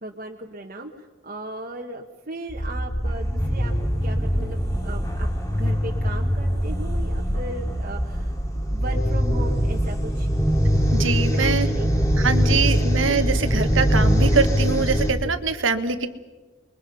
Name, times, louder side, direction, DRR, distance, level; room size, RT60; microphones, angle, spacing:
voice 1, 0.0-10.3 11.3-11.9 12.3-12.9, right 1 dB, 45° right, 0 dB, 1.5 m, -37 dB
sound 1, 2.5-15.1, equal, 15° left, 2.5 m, -22 dB
voice 2, 10.9-11.7 12.2-16.1, right 4 dB, 75° right, 9 dB, 1.5 m, -23 dB
30.0 x 22.5 x 5.6 m, 1.2 s
head